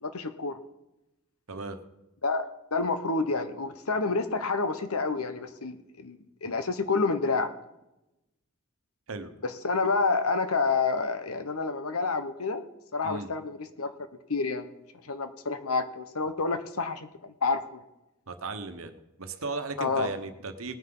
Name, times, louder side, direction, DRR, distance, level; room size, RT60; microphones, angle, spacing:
voice 1, 0.0-0.6 2.2-7.5 9.4-12.6 12.9-13.9 14.3-14.7 15.0-17.8 19.8-20.1, left 4 dB, 80° left, 9 dB, 1.1 m, -29 dB
voice 2, 1.5-1.8 9.1-9.3 13.0-13.3 18.3-18.9 19.2-20.7, right 3 dB, 70° right, 8 dB, 1.1 m, -36 dB
19.5 x 9.5 x 3.9 m, 0.93 s
head